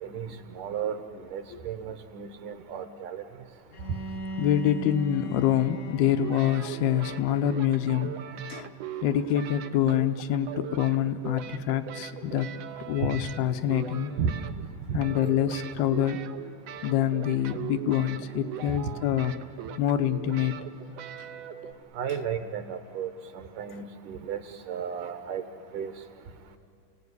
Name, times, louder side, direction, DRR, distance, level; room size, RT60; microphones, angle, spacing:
voice 1, 0.0-1.0 1.3-3.2 14.2-14.4 14.9-15.0 21.9-24.4 24.7-25.4 25.7-25.9, right 7 dB, 65° right, 9 dB, 2.4 m, -33 dB
Bowed string instrument, 3.7-8.7, right 1 dB, 50° left, 1.2 m, -40 dB
voice 2, 4.4-8.1 8.5-8.7 9.0-12.5 12.9-14.1 14.9-16.2 16.8-19.3 19.8-20.6, left 10 dB, 85° left, 8 dB, 2.7 m, -26 dB
sound 1, 6.0-14.7 15.0-21.7, right 9 dB, 85° right, 1.4 m, -40 dB
28.5 x 17.5 x 9.6 m, 2.8 s
omnidirectional pair, 4.3 m